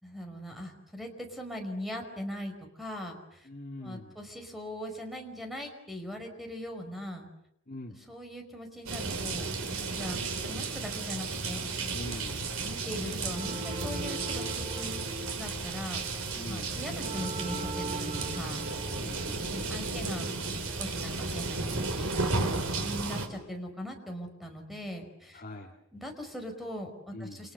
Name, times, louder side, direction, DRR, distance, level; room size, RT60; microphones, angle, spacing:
voice 1, 0.0-3.5 3.8-7.3 8.1-10.2 10.5-11.7 12.6-15.0 15.4-16.0 16.5-18.6 19.5-22.2 22.8-25.4 25.9-27.5, equal, ahead, 4 dB, 5.3 m, -40 dB
voice 2, 3.4-4.2 7.7-8.0 11.9-12.4 16.4-16.8 19.0-19.5 25.3-25.8 27.1-27.5, left 1 dB, 40° left, 0 dB, 2.3 m, -43 dB
sound 1, 8.9-23.3, right 3 dB, 70° right, 4.9 m, -34 dB
sound 2, 13.3-23.8, right 2 dB, 25° right, 1.7 m, -43 dB
29.5 x 28.5 x 6.9 m, 0.75 s
head